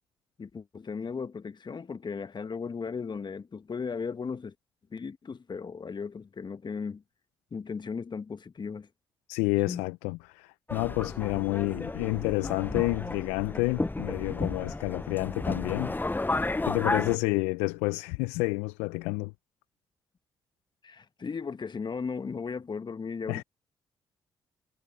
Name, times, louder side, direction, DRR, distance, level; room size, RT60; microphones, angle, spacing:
voice 1, 0.4-4.5 4.9-7.0 7.5-8.9 9.6-9.9 20.8-23.4, left 5 dB, 40° left, 1.5 m, -36 dB
voice 2, 9.3-15.9 16.6-19.3 23.3-23.4, left 25 dB, 80° left, 0.8 m, -29 dB
Subway metro underground, 10.7-17.2, left 2 dB, 15° left, 0.9 m, -32 dB
hypercardioid pair, 40°, 11 cm